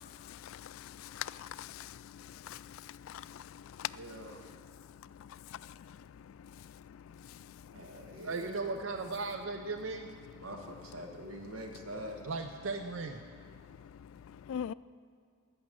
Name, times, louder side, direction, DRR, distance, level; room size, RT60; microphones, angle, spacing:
voice 1, 0.0-8.3 10.2-10.4 13.2-14.7, left 9 dB, 80° left, 0.3 m, -45 dB
voice 2, 3.9-4.4 7.7-9.0 10.4-12.2, equal, 80° right, 1.6 m, -45 dB
voice 3, 8.2-10.1 12.3-13.2, right 3 dB, 65° right, 0.5 m, -36 dB
14.5 x 6.3 x 7.4 m
head